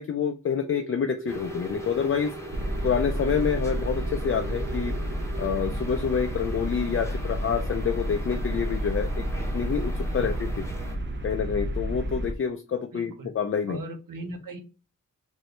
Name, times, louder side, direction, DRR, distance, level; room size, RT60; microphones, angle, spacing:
voice 1, 0.0-2.3 2.8-5.0 5.4-9.2 9.5-10.7 11.2-13.8, left 7 dB, 40° left, 6 dB, 0.4 m, -27 dB
sound 1, 0.6-5.6, right 2 dB, 75° right, 0.7 m, -40 dB
sound 2, 1.3-11.0, equal, 10° left, 0.8 m, -41 dB
sound 3, 2.5-12.3, equal, 35° right, 0.6 m, -30 dB
voice 2, 12.9-13.3 13.7-14.6, right 2 dB, 90° right, 5 dB, 1.1 m, -38 dB
4.2 x 2.7 x 3.2 m, 0.32 s
wide cardioid pair, 150°, 32 cm